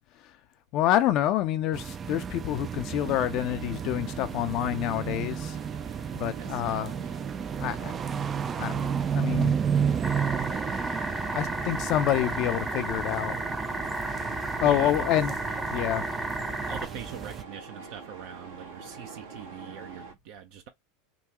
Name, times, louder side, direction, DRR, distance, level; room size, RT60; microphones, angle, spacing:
voice 1, 0.7-5.6 6.1-6.9 7.6-7.9 8.6-9.5 11.3-13.4 14.6-15.3 15.7-16.0, left 12 dB, 55° left, 0.5 m, -27 dB
sound 1, 1.7-17.4, right 7 dB, 30° right, 0.3 m, -32 dB
sound 2, 2.4-20.1, right 5 dB, 80° right, 1.3 m, -47 dB
voice 2, 6.2-6.9 14.6-15.1 15.7-16.2 16.7-20.7, right 9 dB, 65° right, 0.6 m, -43 dB
sound 3, 10.0-16.8, right 2 dB, 10° right, 0.7 m, -33 dB
3.7 x 2.3 x 2.9 m
hypercardioid pair, 100°, 0 cm